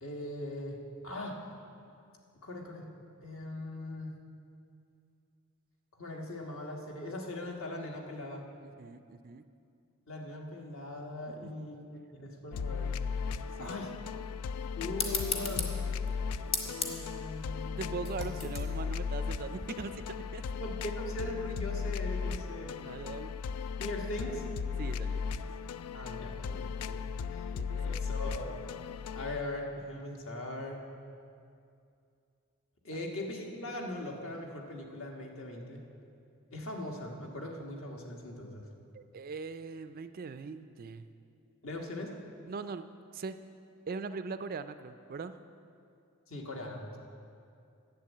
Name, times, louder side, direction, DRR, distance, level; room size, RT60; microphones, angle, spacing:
voice 1, 0.0-1.4 2.4-2.9 3.2-4.2 6.0-8.4 10.1-12.9 13.6-13.9 14.7-15.7 16.6-18.3 20.5-22.9 23.8-24.4 25.9-27.0 27.3-28.5 29.1-30.8 32.8-35.8 36.5-38.6 41.6-42.1 46.3-47.0, left 1 dB, 60° left, 1 dB, 1.5 m, -40 dB
voice 2, 8.8-9.4 11.4-11.5 13.6-13.7 17.8-20.0 20.3-20.4 22.9-23.3 24.8-25.5 27.5-27.8 32.9-33.0 38.9-41.1 42.5-42.9 43.1-43.4 43.9-45.4, right 4 dB, 40° right, 11 dB, 0.4 m, -40 dB
sound 1, 12.5-29.4, left 5 dB, 85° left, 0.4 m, -36 dB
sound 2, 14.9-20.0, left 4 dB, 25° left, 1.1 m, -38 dB
10.5 x 7.2 x 8.3 m, 2.5 s
head